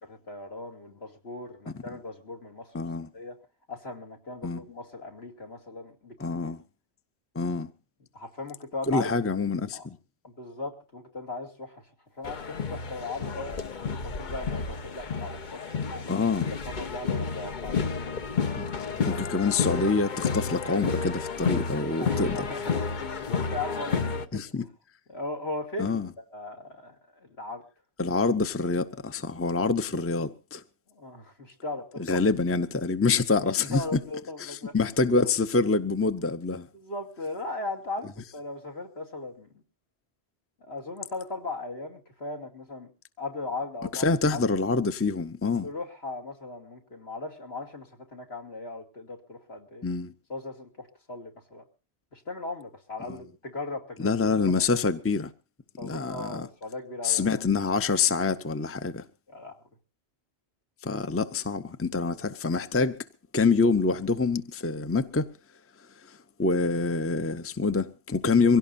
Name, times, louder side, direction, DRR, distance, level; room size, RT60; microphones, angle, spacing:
voice 1, 0.0-2.8 3.1-3.4 3.7-6.5 8.1-9.1 9.7-9.9 10.2-11.8 12.2-15.6 15.9-16.2 16.7-17.7 22.0-24.4 25.1-27.6 31.0-32.3 33.6-34.7 36.7-39.5 40.6-42.9 43.2-44.5 45.6-49.9 50.3-51.6 52.1-54.1 54.5-54.7 55.8-57.3 59.3-59.6, left 2 dB, 70° left, 2.8 m, -38 dB
voice 2, 2.7-3.1 4.4-4.6 6.2-6.6 7.3-7.7 8.9-10.0 16.1-16.5 18.6-18.7 19.1-22.5 24.3-24.7 25.8-26.1 28.0-30.6 32.1-34.0 34.4-36.7 43.9-45.7 49.8-50.1 53.1-53.2 54.0-55.3 55.8-56.5 57.0-59.0 60.8-63.0 63.3-65.3 66.1-68.6, left 4 dB, 15° left, 0.7 m, -26 dB
sound 1, 12.2-24.3, left 5 dB, 45° left, 1.0 m, -31 dB
23.5 x 17.0 x 2.7 m
omnidirectional pair, 1.1 m